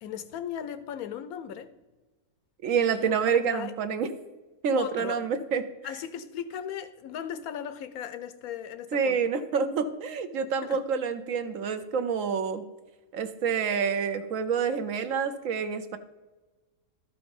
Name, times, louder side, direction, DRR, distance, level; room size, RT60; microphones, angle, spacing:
voice 1, 0.0-1.7 2.9-3.2 3.5-3.7 4.8-5.2 5.8-9.2 10.6-10.8, left 9 dB, 80° left, 12 dB, 1.1 m, -37 dB
voice 2, 2.6-4.1 4.6-5.6 8.9-12.6 13.1-16.0, right 6 dB, 65° right, 10 dB, 1.0 m, -27 dB
12.5 x 4.9 x 5.3 m, 1.2 s
omnidirectional pair, 1.5 m